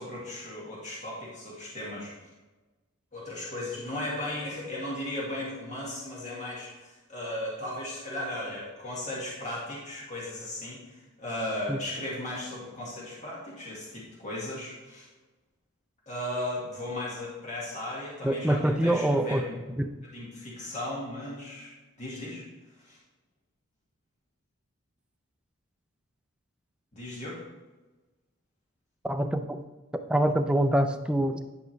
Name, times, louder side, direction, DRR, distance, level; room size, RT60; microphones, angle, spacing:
voice 1, 0.0-2.3 3.1-15.1 16.1-19.6 20.1-21.7 22.0-22.4 22.7-23.0 26.9-27.4, left 1 dB, 35° left, -6 dB, 1.9 m, -36 dB
voice 2, 18.2-19.4 19.8-19.9 29.0-29.6 30.1-31.4, right 1 dB, 5° right, 6 dB, 0.4 m, -25 dB
10.5 x 5.4 x 3.2 m, 1.2 s
head